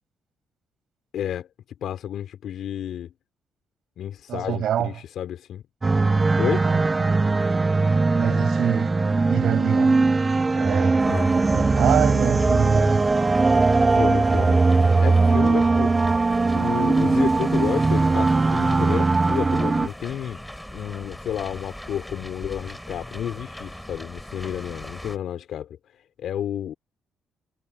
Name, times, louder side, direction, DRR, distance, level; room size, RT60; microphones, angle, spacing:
voice 1, 1.1-1.5 1.8-3.1 4.0-5.6 6.4-6.7 11.1-11.3 13.9-14.7 15.0-16.0 16.6-20.4 20.7-26.7, left 10 dB, 70° left, 4.4 m, -31 dB
voice 2, 4.3-4.9 6.6-6.8 8.1-8.9 9.3-10.0 10.6-11.0 11.3-13.0, right 10 dB, 70° right, 6.5 m, -26 dB
sound 1, 5.8-19.9, right 3 dB, 25° right, 0.7 m, -20 dB
sound 2, 11.0-25.2, left 1 dB, 5° left, 5.5 m, -40 dB
cardioid pair, 90°, 0 cm